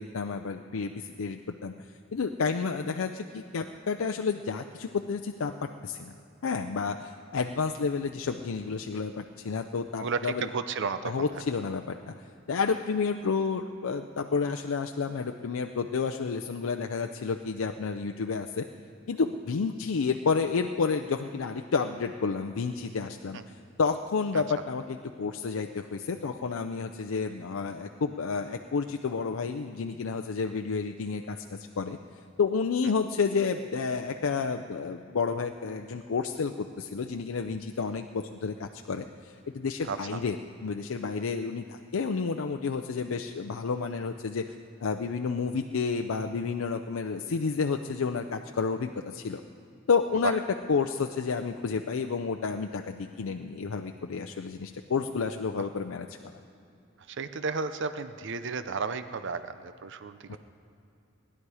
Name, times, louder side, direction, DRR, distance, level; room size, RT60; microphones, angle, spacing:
voice 1, 0.0-1.7 2.1-5.5 5.8-6.1 6.4-10.5 11.0-18.6 19.1-32.0 32.4-40.4 40.6-44.5 44.8-49.4 49.9-50.4 50.7-56.1 60.3-60.4, left 5 dB, 90° left, 5 dB, 0.5 m, -30 dB
voice 2, 10.0-11.4 23.3-23.4 24.3-24.4 39.8-40.2 57.1-60.4, right 4 dB, 60° right, 11 dB, 0.6 m, -33 dB
19.5 x 11.0 x 4.8 m, 2.7 s
head